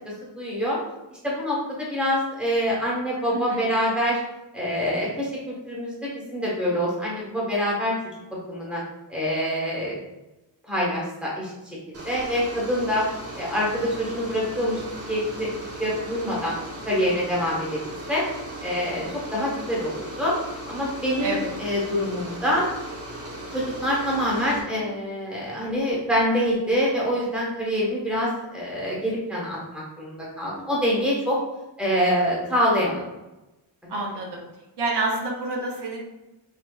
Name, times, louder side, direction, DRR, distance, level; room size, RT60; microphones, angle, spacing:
voice 1, 0.4-0.8 1.2-4.2 4.5-7.9 8.5-8.8 9.1-10.0 10.7-11.5 12.0-13.1 13.4-14.8 15.1-15.5 15.8-16.6 16.8-17.8 18.1-18.2 18.6-19.0 19.3-20.3 20.7-22.7 23.5-31.4 31.8-33.0, equal, ahead, -6 dB, 1.2 m, -25 dB
voice 2, 3.3-3.7 21.2-21.5 33.9-34.4 34.8-36.0, right 2 dB, 65° right, -1 dB, 0.8 m, -28 dB
sound 1, 11.9-24.6, right 1 dB, 35° right, 0.9 m, -37 dB
4.8 x 2.8 x 2.3 m, 1.0 s
wide cardioid pair, 140°, 43 cm